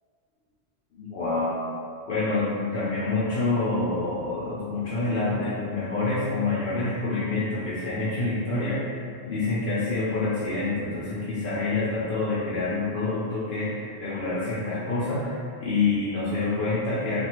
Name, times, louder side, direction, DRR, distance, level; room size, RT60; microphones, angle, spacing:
voice 1, 0.9-1.6 2.1-17.2, left 3 dB, 60° left, -10 dB, 0.7 m, -27 dB
3.4 x 2.3 x 2.9 m, 2.3 s
omnidirectional pair, 1.1 m